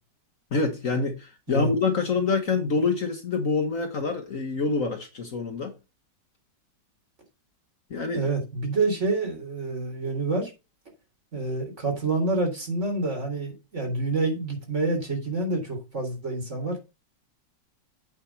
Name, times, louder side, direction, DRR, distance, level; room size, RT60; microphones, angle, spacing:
voice 1, 0.5-5.7 7.9-8.2, left 4 dB, 50° left, 1.5 m, -26 dB
voice 2, 8.1-10.5 11.3-16.8, right 2 dB, 40° right, 3.8 m, -27 dB
8.6 x 5.3 x 5.9 m
omnidirectional pair, 2.0 m